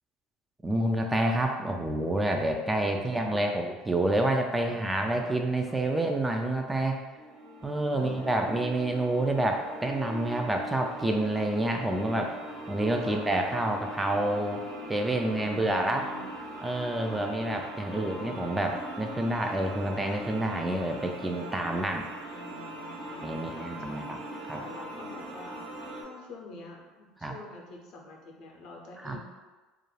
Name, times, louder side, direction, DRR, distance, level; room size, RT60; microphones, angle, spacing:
voice 1, 0.6-7.0 7.6-12.3 12.7-14.6 14.9-16.0 16.6-22.1 23.2-24.2 24.5-24.6 27.2-27.3 29.0-29.2, right 1 dB, 15° right, 3 dB, 0.3 m, -28 dB
voice 2, 2.6-3.5 4.6-5.8 7.9-8.8 13.0-13.3 15.3-16.4 17.0-17.2 17.9-18.7 20.8-20.9 22.3-24.2 24.6-25.6 26.0-29.2, left 1 dB, 65° left, -1 dB, 0.6 m, -47 dB
sound 1, 7.2-26.0, right 1 dB, 65° right, 0.7 m, -41 dB
2.4 x 2.2 x 3.1 m, 1.3 s
supercardioid pair, 85°, 0 cm